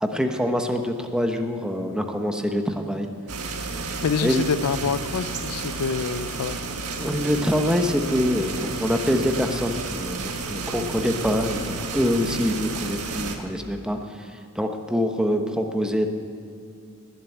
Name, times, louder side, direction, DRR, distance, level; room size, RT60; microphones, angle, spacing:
voice 1, 0.0-3.1 4.2-4.4 7.0-16.1, equal, 5° right, 4 dB, 1.0 m, -25 dB
sound 1, 3.3-13.3, right 3 dB, 80° right, 1.6 m, -32 dB
voice 2, 4.0-6.6, left 6 dB, 80° left, 15 dB, 0.5 m, -26 dB
19.5 x 7.9 x 9.0 m, 2.3 s
head